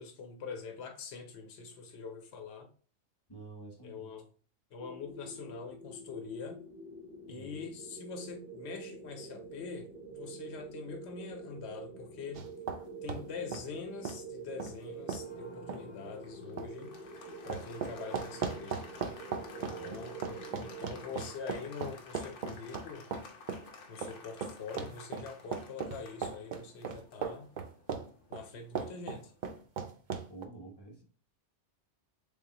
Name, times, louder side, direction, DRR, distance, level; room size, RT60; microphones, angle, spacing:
voice 1, 0.0-2.7 3.8-4.3 4.7-6.6 7.3-12.5 13.0-16.9 17.4-18.8 19.6-23.0 23.9-27.5 28.3-29.3, left 5 dB, 65° left, 1.1 m, -44 dB
voice 2, 3.3-4.2 7.2-7.7 19.6-20.1 20.4-20.7 30.3-31.0, right 2 dB, 20° left, 0.9 m, -50 dB
sound 1, 4.8-21.3, right 3 dB, 10° right, 0.7 m, -47 dB
sound 2, 12.3-12.8 13.1-13.2 13.5-13.6 14.0-14.2 14.6-14.7 15.1-15.2 15.7-15.8 16.6-16.7 17.5-23.7 24.0-28.1 28.3-28.4 28.7-30.4, right 6 dB, 55° right, 0.5 m, -37 dB
Applause, 15.0-29.4, left 4 dB, 85° left, 1.1 m, -53 dB
3.7 x 3.7 x 2.9 m
omnidirectional pair, 1.2 m